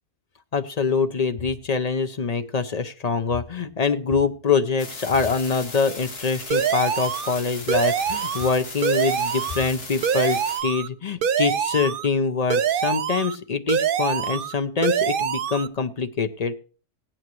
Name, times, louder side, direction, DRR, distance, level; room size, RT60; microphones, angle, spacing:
voice 1, 0.5-16.5, left 5 dB, 55° left, 9 dB, 0.4 m, -24 dB
sound 1, 4.8-10.6, left 3 dB, 90° left, 3.0 m, -38 dB
sound 2, 6.5-7.4 7.7-8.5 8.8-9.7 10.0-10.9 11.2-12.1 12.5-13.4 13.7-14.5 14.8-15.7, right 8 dB, 65° right, 0.5 m, -24 dB
17.5 x 8.9 x 3.1 m, 0.38 s
omnidirectional pair, 1.6 m